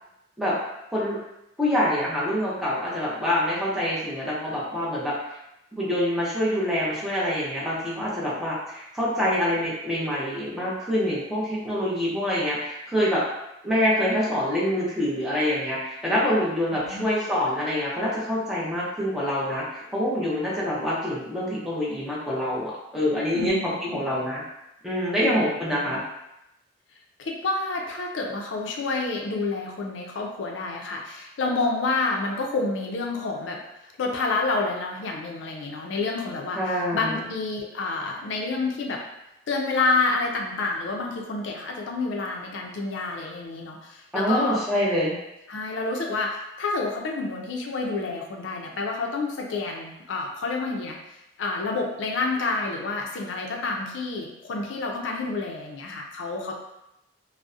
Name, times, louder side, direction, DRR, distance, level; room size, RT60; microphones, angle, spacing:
voice 1, 1.6-5.2 5.7-13.2 13.6-24.4 24.8-26.0 36.5-37.2 44.1-45.2, equal, ahead, -7 dB, 0.5 m, -26 dB
voice 2, 16.7-17.1 23.3-24.1 25.2-25.4 27.2-33.6 34.0-36.6 36.9-39.0 39.5-44.6 45.5-51.0 51.4-56.6, left 3 dB, 80° left, 1 dB, 0.4 m, -28 dB
2.6 x 2.0 x 2.3 m, 0.87 s
head